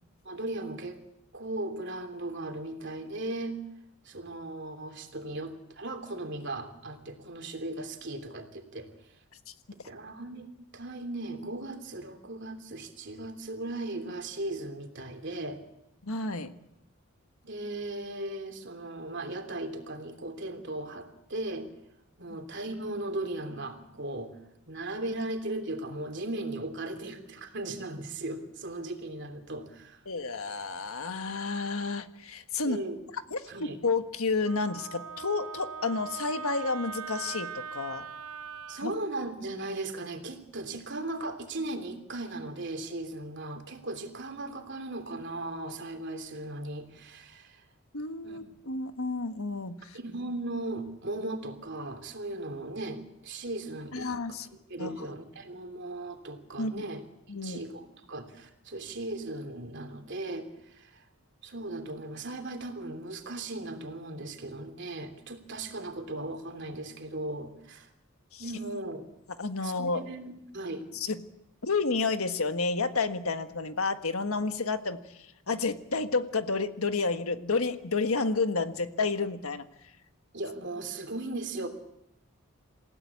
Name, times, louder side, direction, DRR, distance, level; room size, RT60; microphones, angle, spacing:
voice 1, 0.2-1.0 1.3-3.6 4.0-8.9 9.7-10.5 10.7-15.6 17.4-21.7 22.2-24.4 24.7-30.0 32.6-33.0 33.4-33.8 38.7-47.6 48.2-48.4 49.9-54.1 54.5-57.0 57.3-61.0 61.4-67.9 68.4-69.0 69.6-70.9 80.3-81.7, right 2 dB, 55° right, 5 dB, 3.2 m, -37 dB
voice 2, 16.0-16.5 30.0-32.8 33.3-38.0 38.8-38.9 47.9-50.0 53.9-54.5 54.8-55.0 56.6-56.8 57.3-57.6 68.3-68.4 69.4-70.0 70.9-71.2 71.6-75.0 75.5-79.6, left 4 dB, 85° left, 8 dB, 1.5 m, -30 dB
Wind instrument woodwind instrument, 34.4-38.8, right 6 dB, 85° right, 0.9 m, -40 dB
28.0 x 16.0 x 8.5 m, 0.84 s
head